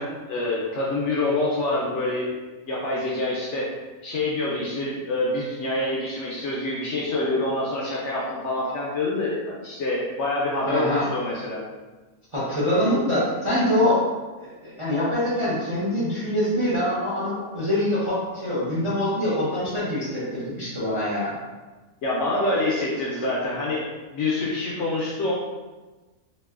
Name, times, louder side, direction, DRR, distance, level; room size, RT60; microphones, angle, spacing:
voice 1, 0.0-2.3 2.7-3.7 4.0-11.6 22.0-23.8 24.1-25.3, left 2 dB, 65° left, -5 dB, 0.7 m, -26 dB
voice 2, 10.7-11.0 12.3-14.1 14.4-21.3, left 1 dB, 35° right, -9 dB, 0.5 m, -24 dB
3.0 x 2.7 x 2.3 m, 1.2 s
omnidirectional pair, 1.5 m